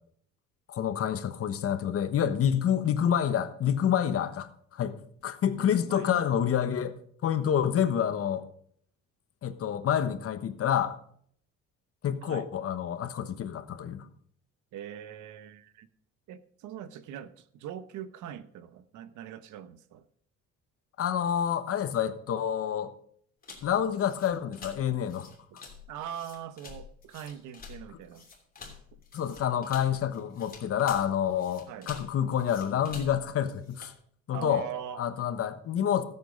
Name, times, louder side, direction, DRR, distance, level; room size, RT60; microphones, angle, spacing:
voice 1, 0.7-5.0 5.2-8.4 9.4-11.0 12.0-14.1 21.0-22.9 23.6-25.3 29.1-33.9 34.3-34.6 35.0-36.0, left 9 dB, 50° left, 1.1 m, -28 dB
voice 2, 5.5-6.3 12.2-12.5 14.7-15.9 16.3-20.0 25.5-28.3 31.7-31.9 34.3-35.0, right 10 dB, 85° right, 1.0 m, -42 dB
sound 1, 23.4-34.0, left 5 dB, 30° left, 3.1 m, -48 dB
14.0 x 8.3 x 5.1 m
cardioid pair, 135°, 29 cm